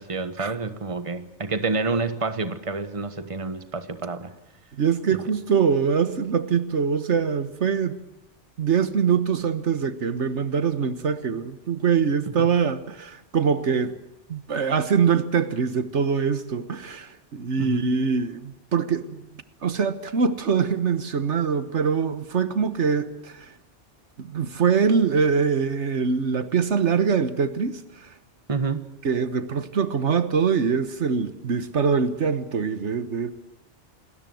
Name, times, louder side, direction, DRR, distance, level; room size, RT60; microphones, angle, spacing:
voice 1, 0.0-4.3 12.4-12.5 17.6-17.8 28.5-28.8, right 3 dB, 30° right, 1.4 m, -28 dB
voice 2, 4.7-8.0 8.6-14.0 14.3-19.3 19.6-23.5 24.2-28.1 29.0-33.3, right 6 dB, 75° right, 1.5 m, -23 dB
27.5 x 20.5 x 7.8 m
omnidirectional pair, 1.2 m